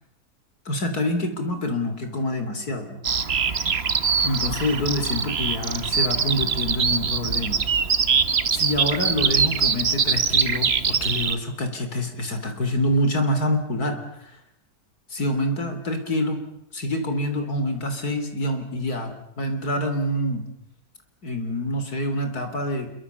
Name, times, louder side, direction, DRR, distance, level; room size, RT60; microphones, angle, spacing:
voice 1, 0.7-3.0 4.2-7.6 8.5-14.3 15.1-16.4 16.7-19.1 19.4-20.4 21.2-22.9, left 1 dB, 75° left, 7 dB, 4.0 m, -26 dB
Bird vocalization bird call bird song, 3.0-11.4, right 6 dB, 45° right, 1.3 m, -23 dB
27.0 x 23.0 x 7.1 m, 0.81 s
omnidirectional pair, 1.6 m